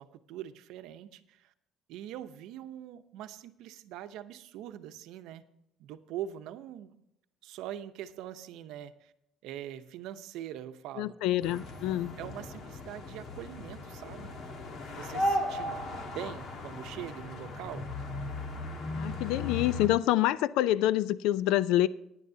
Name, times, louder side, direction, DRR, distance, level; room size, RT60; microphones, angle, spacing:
voice 1, 0.0-1.5 1.9-5.4 5.8-6.9 7.4-9.1 9.4-11.1 12.2-14.3 14.9-15.8 16.0-17.8, right 11 dB, 75° right, 10 dB, 0.8 m, -43 dB
voice 2, 11.0-12.2 19.0-21.9, left 14 dB, 85° left, 18 dB, 0.4 m, -27 dB
sound 1, 11.4-19.9, left 1 dB, 45° left, 1.5 m, -36 dB
17.5 x 9.9 x 2.8 m, 0.81 s
cardioid pair, 145°, 0 cm